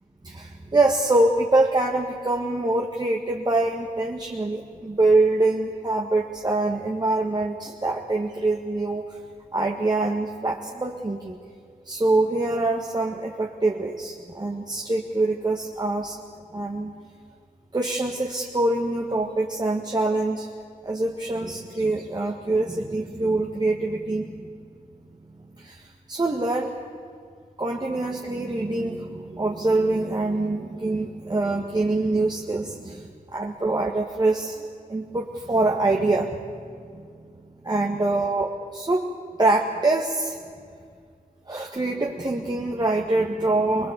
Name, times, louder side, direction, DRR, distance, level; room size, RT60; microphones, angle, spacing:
voice 1, 0.2-9.2 9.5-11.4 11.8-16.2 16.5-16.9 17.7-20.5 20.8-24.5 25.6-26.7 27.6-36.4 36.9-37.0 37.6-39.1 39.4-40.4 41.5-43.9, right 2 dB, 30° right, 0 dB, 1.8 m, -24 dB
23.0 x 21.0 x 8.3 m, 2.2 s
cardioid pair, 75°, 15 cm